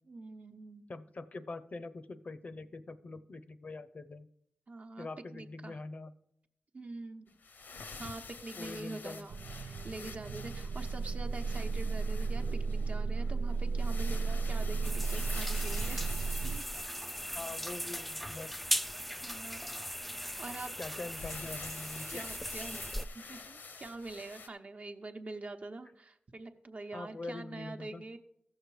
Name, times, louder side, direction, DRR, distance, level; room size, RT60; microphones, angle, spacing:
voice 1, 0.1-0.8 4.7-5.1 5.3-5.8 6.7-7.4 7.9-16.1 16.4-16.6 19.2-19.7 20.4-20.7 22.1-28.2, right 2 dB, 50° right, 6 dB, 0.9 m, -45 dB
voice 2, 0.9-4.3 5.0-6.1 8.6-9.3 17.3-18.6 20.8-22.3 26.9-28.0, left 3 dB, 50° left, 12 dB, 0.6 m, -44 dB
sound 1, 7.3-17.4 21.1-24.5, left 4 dB, 80° left, 0.8 m, -49 dB
sound 2, 9.3-16.6, right 4 dB, 90° right, 0.4 m, -34 dB
sound 3, 14.8-23.1, equal, ahead, 0.3 m, -38 dB
14.5 x 6.5 x 4.8 m, 0.76 s
cardioid pair, 60°, 3 cm